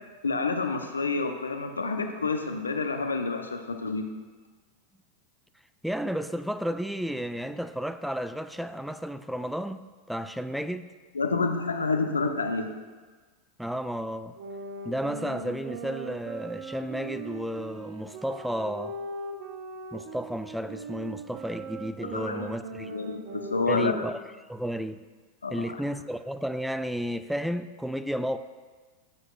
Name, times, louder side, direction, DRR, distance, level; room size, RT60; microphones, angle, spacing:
voice 1, 0.2-4.1 11.1-12.7 22.1-22.5 22.9-23.9 25.4-25.7, left 3 dB, 80° left, 0.8 m, -28 dB
voice 2, 5.8-10.9 13.6-14.3 14.8-19.0 19.9-23.0 23.7-24.2 24.5-25.0 25.5-28.4, equal, ahead, 0.4 m, -32 dB
sound 1, 14.4-24.3, right 3 dB, 50° right, 0.9 m, -40 dB
14.5 x 7.8 x 2.4 m
figure-of-eight pair, 90°, 0 cm